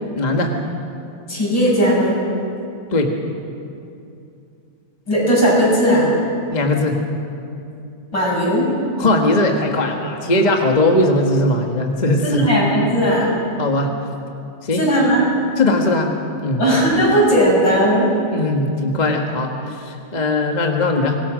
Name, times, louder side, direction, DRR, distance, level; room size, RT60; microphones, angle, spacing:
voice 1, 0.1-0.5 2.9-3.1 6.5-7.0 9.0-12.6 13.6-13.9 14.6-14.8 15.6-16.1 16.4-16.6 18.3-21.2, left 2 dB, 25° left, 2 dB, 1.4 m, -19 dB
voice 2, 1.3-2.2 5.1-6.1 8.1-8.7 12.2-13.3 14.7-15.3 16.6-18.1, equal, 65° left, -5 dB, 8.2 m, -16 dB
24.5 x 20.0 x 6.3 m, 2.6 s
omnidirectional pair, 2.1 m